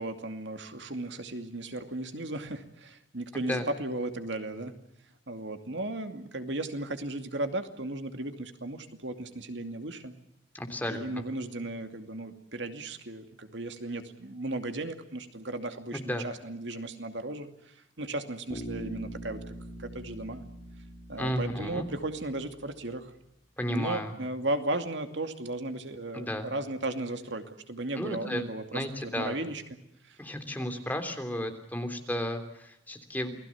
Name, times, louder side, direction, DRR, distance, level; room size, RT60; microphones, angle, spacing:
voice 1, 0.0-4.7 5.3-10.1 10.9-19.4 19.8-20.4 21.1-23.1 23.7-29.6 30.0-30.2 30.5-30.7, right 2 dB, 70° right, 7 dB, 2.5 m, -35 dB
voice 2, 3.3-3.6 10.5-11.2 15.9-16.2 21.2-21.9 23.6-24.1 26.1-26.5 27.9-28.4 28.7-29.4 30.2-33.3, left 1 dB, 10° left, 5 dB, 3.3 m, -33 dB
Bass guitar, 18.5-22.6, right 1 dB, 35° left, 3.7 m, -43 dB
29.0 x 20.5 x 7.2 m, 0.82 s
head